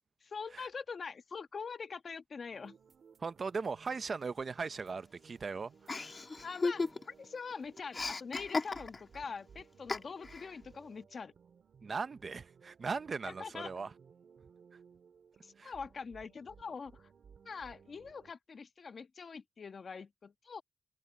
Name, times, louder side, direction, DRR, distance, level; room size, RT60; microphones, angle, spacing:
voice 1, 0.2-2.8 6.4-11.3 13.2-13.7 15.4-17.1 17.4-20.6, left 5 dB, 60° left, 1.2 m, -44 dB
sound 1, 2.5-18.3, right 6 dB, 75° right, 4.0 m, -60 dB
voice 2, 3.2-6.1 11.8-13.9 15.6-15.7, right 4 dB, 55° right, 0.7 m, -39 dB
Chuckle chortle, 5.9-7.3 7.5-9.2 9.9-10.5, left 3 dB, 45° left, 2.3 m, -35 dB
open air
cardioid pair, 75°, 0 cm